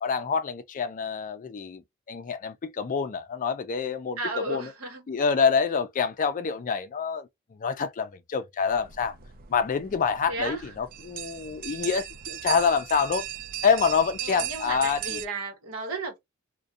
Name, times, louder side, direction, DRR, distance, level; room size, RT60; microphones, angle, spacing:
voice 1, 0.0-4.7 5.1-9.2 9.5-13.2 13.6-15.2, left 6 dB, 35° left, 0.3 m, -27 dB
voice 2, 4.2-5.1 10.3-10.7 14.2-16.2, right 2 dB, 70° right, 1.0 m, -34 dB
sound 1, 8.7-15.3, right 11 dB, 40° right, 0.3 m, -37 dB
2.6 x 2.2 x 2.3 m
head